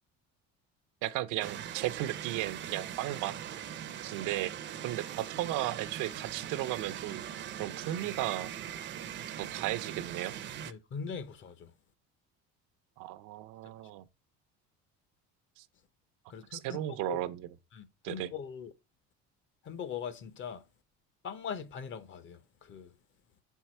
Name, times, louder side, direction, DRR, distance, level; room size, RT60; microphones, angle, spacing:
voice 1, 1.0-3.3 4.0-4.5 4.8-7.2 7.6-8.5 9.4-10.3 13.0-14.0 15.6-15.7 16.5-17.6 18.0-18.3, right 15 dB, 80° right, 0.7 m, -35 dB
sound 1, 1.4-10.7, right 10 dB, 40° right, 0.5 m, -41 dB
voice 2, 10.6-11.7 16.3-17.2 17.7-18.7 19.6-20.6 21.2-22.9, left 6 dB, 40° left, 0.7 m, -41 dB
7.3 x 4.6 x 4.3 m
cardioid pair, 155°, 30 cm